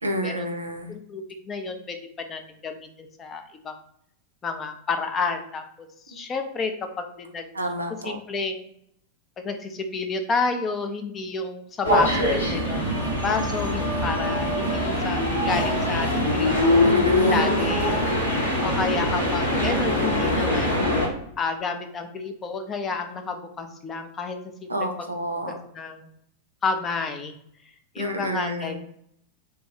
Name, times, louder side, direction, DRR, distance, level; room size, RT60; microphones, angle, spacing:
voice 1, 0.0-0.9 6.1-6.2 7.5-8.2 16.8-17.8 24.7-25.5 28.0-28.8, right 1 dB, 80° right, 4 dB, 0.4 m, -29 dB
voice 2, 0.9-3.8 4.4-6.7 7.0-7.5 8.0-8.6 9.4-16.9 17.3-18.0 18.6-20.9 21.4-24.7 25.0-26.1 26.6-27.3 27.9-28.8, left 4 dB, 25° left, 6 dB, 0.4 m, -30 dB
sound 1, 11.8-21.1, left 1 dB, 75° left, 1.0 m, -23 dB
3.3 x 2.2 x 2.8 m, 0.71 s
figure-of-eight pair, 90°, 0 cm